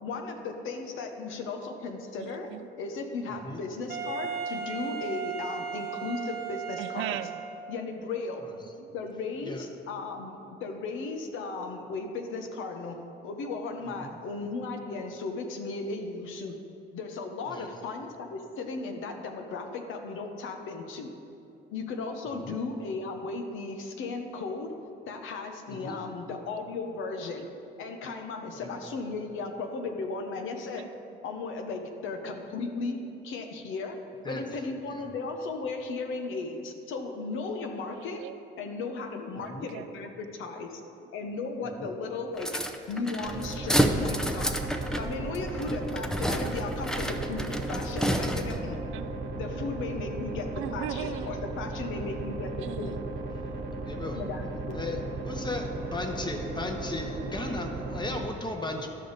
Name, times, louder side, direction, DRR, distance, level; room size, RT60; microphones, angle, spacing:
voice 1, 0.0-2.5 2.8-7.2 7.7-8.5 8.9-16.6 16.9-21.1 21.7-24.7 25.1-27.5 27.8-30.9 31.2-34.0 34.3-38.2 38.6-40.8 41.1-42.5 42.9-44.6 45.0-48.8 49.3-53.0 54.1-54.8, left 3 dB, 80° left, 5 dB, 0.9 m, -36 dB
voice 2, 2.2-2.7 4.2-4.4 6.8-7.4 8.8-8.9 10.2-10.5 30.8-31.2 37.9-38.4 39.4-39.9 44.4-44.7 48.9-49.5 50.5-51.4 52.6-53.0 53.3-53.7 54.6-54.7 56.7-56.8, right 12 dB, 90° right, 12 dB, 0.4 m, -40 dB
Wind instrument woodwind instrument, 3.9-7.8, right 7 dB, 50° right, 0.9 m, -36 dB
voice 3, 22.3-22.6 25.7-26.0 28.6-28.8 34.2-34.4 34.9-35.0 39.5-39.7 41.6-41.9 53.8-54.2 54.7-55.0 55.2-58.9, left 2 dB, 20° left, 4 dB, 1.0 m, -36 dB
sound 1, 42.4-48.7, equal, 5° left, 0.5 m, -30 dB
sound 2, 43.2-58.3, right 2 dB, 70° right, 1.2 m, -36 dB
12.5 x 5.2 x 4.0 m, 2.6 s
cardioid pair, 90°, 20 cm